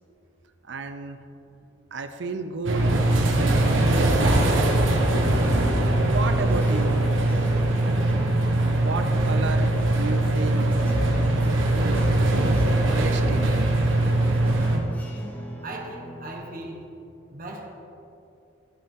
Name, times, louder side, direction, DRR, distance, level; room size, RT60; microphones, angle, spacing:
voice 1, 0.7-1.2 1.9-2.9 3.3-4.2 6.0-7.0 8.8-10.7 12.8-13.5 14.3-14.4 14.7-14.8, right 4 dB, 65° right, 8 dB, 0.6 m, -32 dB
sound 1, 2.6-14.8, right 1 dB, 85° right, 1.2 m, -21 dB
sound 2, 5.2-16.4, equal, 10° left, 0.9 m, -40 dB
voice 2, 15.6-16.8 17.3-17.7, right 2 dB, 45° right, -1 dB, 1.2 m, -37 dB
14.0 x 5.5 x 3.7 m, 2.6 s
head